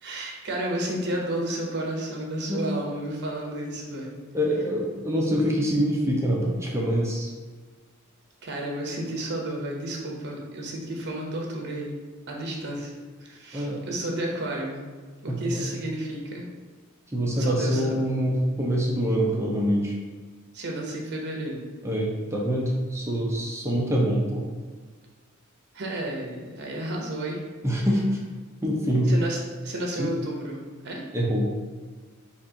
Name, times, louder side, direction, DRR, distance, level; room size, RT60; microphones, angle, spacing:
voice 1, 0.0-4.1 8.4-11.9 12.3-12.9 13.2-14.8 15.2-16.5 17.4-18.0 20.5-21.7 25.7-27.4 29.1-31.0, right 1 dB, 55° right, 0 dB, 0.9 m, -32 dB
voice 2, 4.3-7.3 13.5-13.8 15.3-15.7 17.1-19.9 21.8-24.4 27.6-28.2 28.6-29.1 30.0-30.1 31.1-31.5, equal, 15° right, -3 dB, 0.6 m, -25 dB
4.1 x 2.5 x 4.8 m, 1.4 s
head